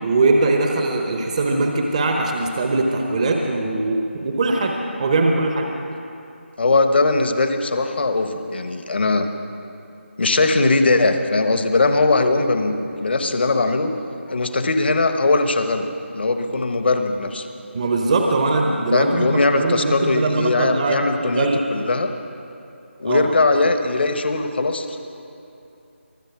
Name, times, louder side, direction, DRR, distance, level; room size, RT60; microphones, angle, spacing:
voice 1, 0.0-5.7 17.7-21.6 23.0-23.3, right 3 dB, 35° right, 3 dB, 0.9 m, -21 dB
voice 2, 6.6-9.3 10.2-13.9 14.3-15.9 16.1-17.5 18.9-22.1 23.0-24.9, left 3 dB, 55° left, 7 dB, 1.2 m, -20 dB
23.5 x 7.9 x 6.0 m, 2.8 s
figure-of-eight pair, 160°, 7 cm